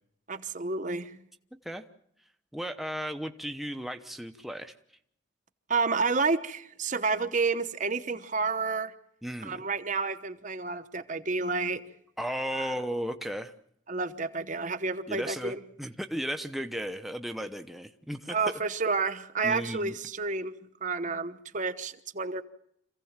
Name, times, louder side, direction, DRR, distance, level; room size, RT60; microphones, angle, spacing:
voice 1, 0.3-1.2 5.7-8.9 9.4-11.8 12.6-12.7 13.9-15.6 18.3-20.6 20.8-22.4, right 4 dB, 40° right, 1.0 m, -30 dB
voice 2, 2.5-4.7 9.2-9.6 12.2-13.5 15.1-18.4 19.4-19.9, equal, ahead, 0.9 m, -35 dB
27.0 x 16.5 x 7.4 m
head